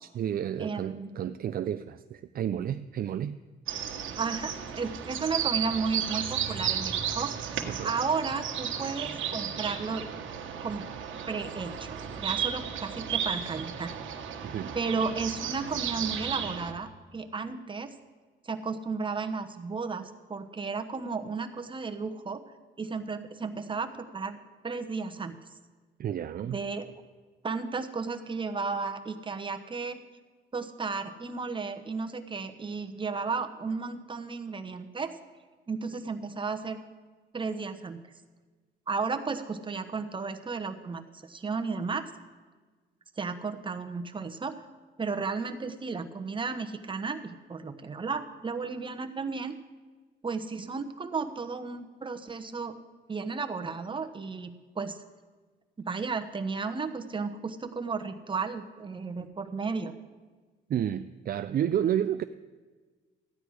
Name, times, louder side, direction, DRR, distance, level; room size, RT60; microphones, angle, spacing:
voice 1, 0.0-3.4 7.7-7.9 14.4-14.7 26.0-26.6 60.7-62.2, right 10 dB, 50° right, 11 dB, 0.4 m, -31 dB
voice 2, 0.6-1.1 4.2-7.6 7.8-10.1 10.6-10.9 11.3-13.9 14.7-17.9 18.4-22.4 22.8-25.4 26.4-26.8 27.4-30.0 30.5-35.1 35.7-36.8 37.3-38.0 38.9-42.1 43.2-44.6 45.0-49.6 50.2-52.7 53.1-55.0 55.8-59.9, right 4 dB, 25° right, 5 dB, 1.0 m, -34 dB
sound 1, 3.7-16.7, right 8 dB, 75° right, 1.3 m, -34 dB
14.5 x 9.9 x 4.8 m, 1.4 s
cardioid pair, 90°, 20 cm